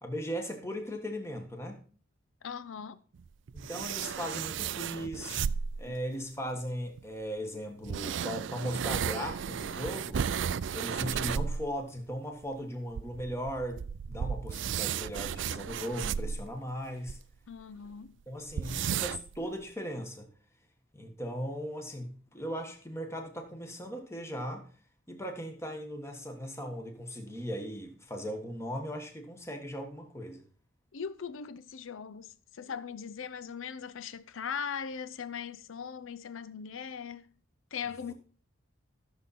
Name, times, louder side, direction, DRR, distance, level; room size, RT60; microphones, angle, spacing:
voice 1, 0.0-1.8 3.5-5.4 5.8-10.2 10.7-17.2 18.3-20.3 20.9-24.7 25.1-30.4 38.1-38.2, equal, 15° left, 1.5 m, -38 dB
voice 2, 2.4-3.0 5.9-6.0 17.5-18.1 30.9-37.3 37.7-38.1, left 7 dB, 75° left, 0.5 m, -39 dB
sound 1, 3.1-5.9 7.0-7.1 7.8-11.7 12.0-12.1 12.4-12.5 12.9-17.2 17.6-17.7 17.9-18.0 18.5-19.4, right 7 dB, 65° right, 0.4 m, -34 dB
14.0 x 7.0 x 4.2 m
head